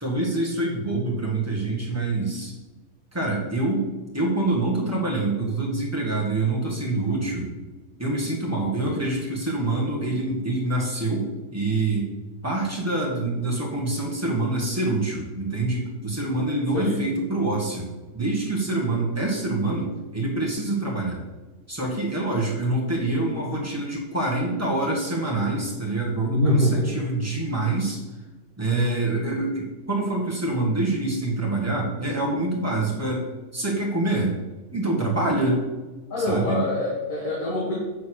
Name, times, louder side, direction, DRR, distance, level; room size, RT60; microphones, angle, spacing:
voice 1, 0.0-2.5 3.1-3.9 4.1-7.5 8.0-12.1 12.4-17.9 18.1-21.2 21.7-28.0 28.6-33.3 33.5-34.3 34.7-35.7 36.2-36.6, right 2 dB, 10° right, -4 dB, 1.9 m, -26 dB
voice 2, 26.3-27.0 36.1-37.7, left 1 dB, 55° left, -6 dB, 2.3 m, -24 dB
7.9 x 4.1 x 6.4 m, 1.2 s
omnidirectional pair, 1.7 m